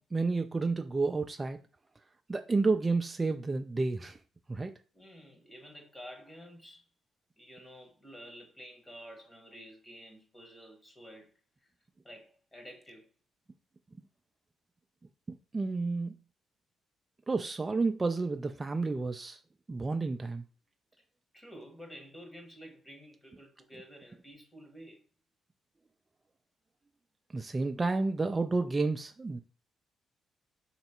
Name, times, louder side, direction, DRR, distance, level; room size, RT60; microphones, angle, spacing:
voice 1, 0.1-1.6 2.3-4.2 4.5-4.7 15.3-16.2 17.3-19.4 19.7-20.4 27.3-29.4, right 3 dB, 25° right, 0.3 m, -30 dB
voice 2, 4.9-6.8 7.4-11.3 12.0-13.1 21.3-25.0, equal, 20° left, 1.3 m, -50 dB
3.2 x 3.0 x 4.4 m
cardioid pair, 90°, 0 cm